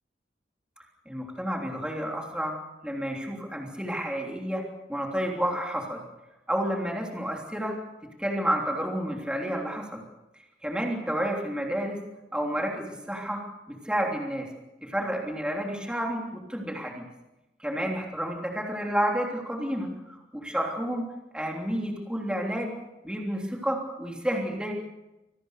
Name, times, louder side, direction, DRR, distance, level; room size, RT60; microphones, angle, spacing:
voice 1, 1.0-2.6 2.8-6.0 6.5-7.8 8.0-10.0 10.6-12.0 12.3-13.4 13.7-14.5 14.8-17.0 17.6-21.1 21.3-22.7 23.0-24.7, equal, 5° right, 0 dB, 3.3 m, -30 dB
26.0 x 19.0 x 6.7 m, 0.98 s
head